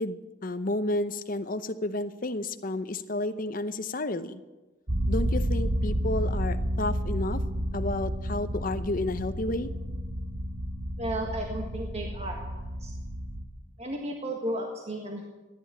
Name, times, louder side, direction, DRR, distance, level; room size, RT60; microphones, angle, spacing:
voice 1, 0.0-4.4 5.1-7.4 7.7-9.7, left 2 dB, 45° left, 9 dB, 0.8 m, -31 dB
sound 1, 4.9-13.4, equal, 55° right, 2.1 m, -31 dB
voice 2, 11.0-12.9 13.8-15.3, right 1 dB, 35° right, 1 dB, 1.6 m, -34 dB
14.5 x 10.5 x 8.7 m, 1.1 s
head